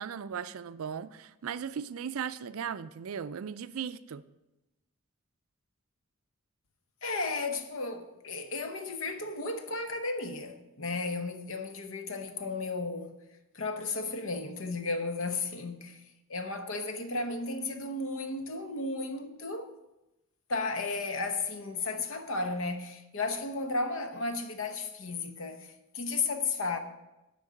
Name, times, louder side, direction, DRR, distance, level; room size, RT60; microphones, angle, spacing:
voice 1, 0.0-4.2, right 7 dB, 75° right, 0.4 m, -37 dB
voice 2, 7.0-13.2 13.5-16.0 16.3-19.7 20.5-25.7 25.9-26.8, left 3 dB, 65° left, 1.0 m, -34 dB
8.4 x 5.2 x 7.7 m
head